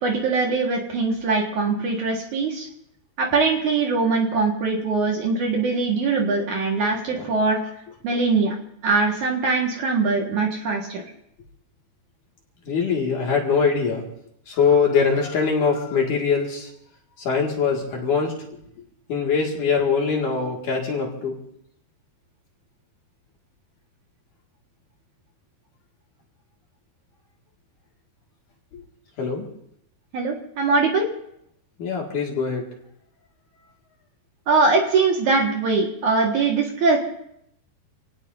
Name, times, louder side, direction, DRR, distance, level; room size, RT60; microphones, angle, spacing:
voice 1, 0.0-2.7 3.2-7.6 8.0-8.6 8.8-11.0 30.1-31.1 34.5-37.0, right 4 dB, 55° right, 0 dB, 2.7 m, -22 dB
voice 2, 12.7-14.1 14.5-16.7 17.2-18.4 19.1-21.4 28.7-28.8 29.2-29.5 31.8-32.7, left 5 dB, 55° left, 0 dB, 3.3 m, -22 dB
28.0 x 18.0 x 2.7 m, 0.73 s
omnidirectional pair, 4.7 m